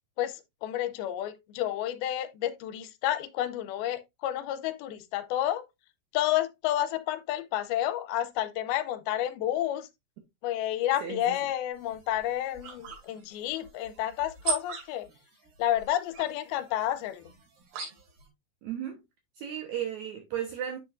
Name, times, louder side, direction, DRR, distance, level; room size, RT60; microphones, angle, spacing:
voice 1, 0.2-5.6 6.1-9.9 10.4-15.1 15.6-17.3, left 12 dB, 80° left, 2.5 m, -30 dB
voice 2, 11.0-11.4 18.6-19.0 19.4-20.8, right 9 dB, 70° right, 1.9 m, -34 dB
sound 1, 11.7-18.3, right 5 dB, 85° right, 4.3 m, -40 dB
8.1 x 6.1 x 2.5 m
omnidirectional pair, 4.4 m